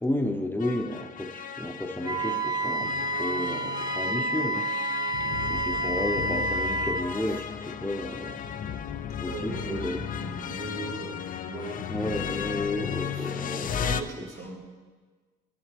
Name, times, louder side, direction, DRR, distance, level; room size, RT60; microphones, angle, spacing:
voice 1, 0.0-4.7 5.4-8.4 9.2-10.0 11.9-13.9 14.2-14.3, left 1 dB, 10° left, 4 dB, 0.7 m, -32 dB
sound 1, 0.6-14.0, left 8 dB, 45° left, 0.4 m, -35 dB
Wind instrument woodwind instrument, 2.0-7.1, right 1 dB, 20° right, 0.4 m, -29 dB
voice 2, 9.2-11.9 13.1-13.3 13.8-14.6, right 3 dB, 80° right, -2 dB, 1.8 m, -39 dB
10.0 x 7.2 x 3.4 m, 1.4 s
cardioid pair, 90°, 20 cm